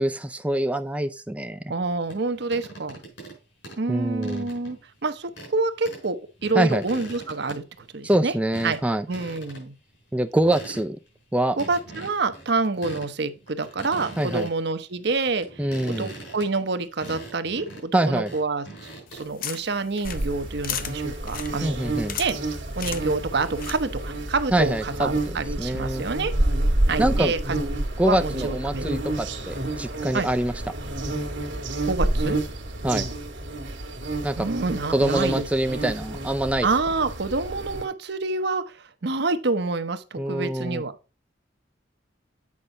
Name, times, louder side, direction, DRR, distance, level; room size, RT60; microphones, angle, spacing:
voice 1, 0.0-1.6 3.9-4.5 6.5-6.8 8.0-9.1 10.1-11.0 11.3-11.6 14.2-14.5 15.6-16.1 17.9-18.3 21.6-22.2 24.5-26.0 27.0-27.3 28.0-30.5 32.8-33.1 34.2-34.5 34.9-36.7 40.2-40.8, right 1 dB, 5° right, 0.3 m, -25 dB
voice 2, 1.7-3.0 3.8-6.2 6.4-7.6 7.9-8.3 8.6-8.8 9.1-9.7 11.6-15.5 15.9-18.7 19.2-21.8 22.2-22.4 22.8-26.3 26.9-27.4 28.0-28.8 30.1-30.3 31.8-32.4 34.4-35.5 36.6-40.9, right 3 dB, 65° right, 0.8 m, -27 dB
sound 1, 2.1-3.4 3.6-4.8 5.3-5.6 5.8-6.1 6.4-8.2 8.5-8.8 9.1-9.6 9.9-10.0 10.3-11.1 11.6-13.1 13.4-14.6 15.1-19.2, right 2 dB, 80° left, 5.1 m, -41 dB
sound 2, 19.1-24.1, left 9 dB, 50° left, 0.7 m, -37 dB
sound 3, 20.0-37.8, right 1 dB, 80° right, 1.6 m, -29 dB
8.6 x 5.4 x 3.7 m
head